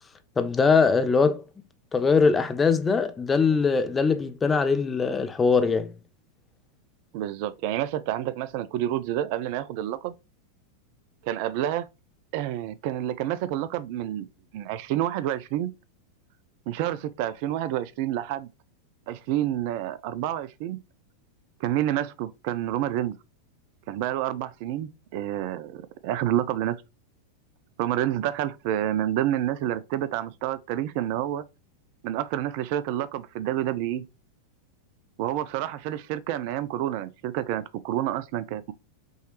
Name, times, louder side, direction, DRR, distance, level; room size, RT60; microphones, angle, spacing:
voice 1, 0.4-1.4 1.9-5.9, left 5 dB, 15° left, 0.5 m, -22 dB
voice 2, 7.1-10.1 11.2-11.9 12.3-14.3 14.5-15.7 16.7-18.5 19.1-20.8 21.6-23.2 23.9-26.8 27.8-31.4 32.0-34.1 35.2-38.7, right 12 dB, 45° right, 0.4 m, -28 dB
5.5 x 3.1 x 3.0 m
figure-of-eight pair, 90°, 0 cm